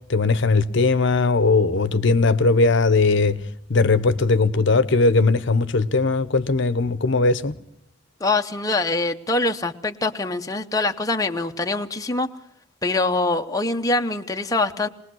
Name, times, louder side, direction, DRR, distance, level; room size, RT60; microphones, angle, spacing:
voice 1, 0.1-3.4 3.7-7.5, left 3 dB, 60° left, 0.9 m, -19 dB
voice 2, 8.2-12.3 12.8-14.9, left 2 dB, 15° left, 0.8 m, -24 dB
21.5 x 20.0 x 6.2 m
head